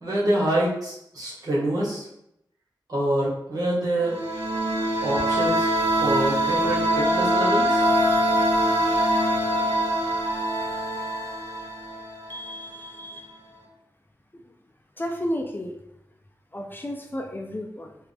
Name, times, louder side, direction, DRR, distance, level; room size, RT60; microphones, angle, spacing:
voice 1, 0.0-2.0 2.9-4.1 5.0-5.7 6.0-7.8, right 1 dB, 55° right, -6 dB, 1.6 m, -26 dB
sound 1, 4.0-12.6, equal, 35° right, 1.5 m, -23 dB
voice 2, 12.3-13.3 15.0-15.8 16.5-18.0, equal, 25° left, 2 dB, 0.5 m, -33 dB
4.8 x 2.5 x 3.4 m, 0.80 s
cardioid pair, 55°, 8 cm